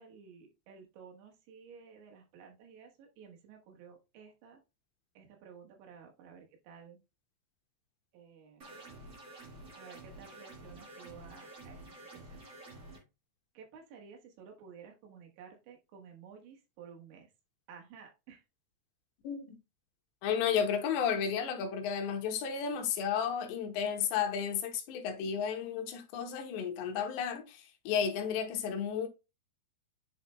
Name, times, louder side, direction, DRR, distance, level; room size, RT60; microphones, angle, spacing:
voice 1, 0.0-4.6 5.2-7.0 8.1-8.8 9.8-11.8 12.1-12.2 13.6-17.3 17.7-18.4 20.4-20.7, right 6 dB, 90° right, 3.8 m, -53 dB
sound 1, 8.6-13.0, right 2 dB, 70° right, 0.7 m, -50 dB
voice 2, 19.2-19.6 20.2-29.1, left 7 dB, 80° left, 3.1 m, -33 dB
10.0 x 4.2 x 2.2 m
omnidirectional pair, 5.1 m